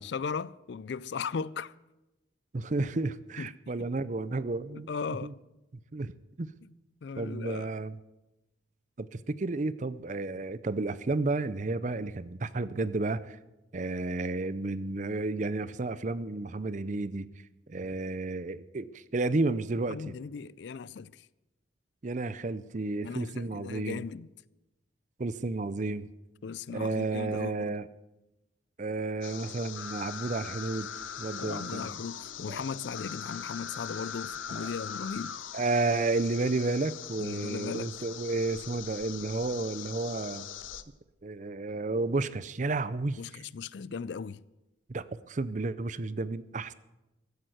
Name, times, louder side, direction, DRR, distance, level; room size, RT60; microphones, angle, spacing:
voice 1, 0.0-1.7 3.4-3.9 4.7-5.3 7.0-7.7 19.9-21.3 23.0-24.3 26.4-27.8 31.4-35.4 37.2-37.9 43.2-44.4, left 5 dB, 60° left, 0.4 m, -37 dB
voice 2, 2.5-5.3 5.9-6.1 6.4-6.5 7.2-8.0 9.0-13.4 13.7-17.3 17.7-20.1 22.0-24.0 25.2-26.1 26.7-27.9 28.8-30.9 31.2-32.0 32.5-32.6 35.5-40.5 41.2-43.4 44.9-46.7, right 3 dB, 40° right, 0.5 m, -32 dB
sound 1, 29.2-40.8, left 8 dB, 80° left, 0.8 m, -41 dB
15.0 x 8.9 x 8.0 m
head